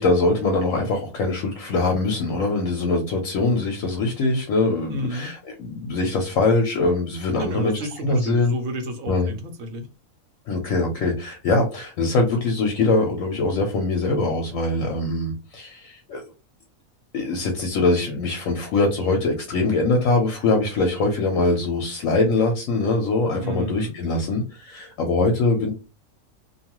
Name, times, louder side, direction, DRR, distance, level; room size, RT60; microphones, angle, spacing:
voice 1, 0.0-8.5 9.1-9.3 10.5-16.2 17.1-25.7, left 3 dB, 70° left, 3 dB, 0.9 m, -22 dB
voice 2, 4.9-5.3 7.4-9.9 23.4-23.9, equal, 65° right, 5 dB, 1.0 m, -31 dB
2.7 x 2.3 x 2.9 m, 0.30 s
omnidirectional pair, 1.5 m